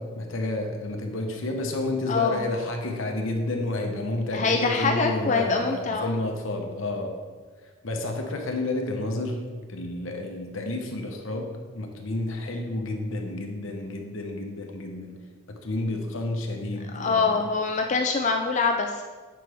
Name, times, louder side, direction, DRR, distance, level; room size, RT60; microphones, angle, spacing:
voice 1, 0.0-7.1 7.8-15.2 15.5-17.3, left 2 dB, 70° left, 3 dB, 0.9 m, -30 dB
voice 2, 2.1-2.5 4.3-6.2 16.9-19.0, left 4 dB, 35° left, 4 dB, 0.4 m, -24 dB
9.8 x 5.9 x 3.5 m, 1.4 s
head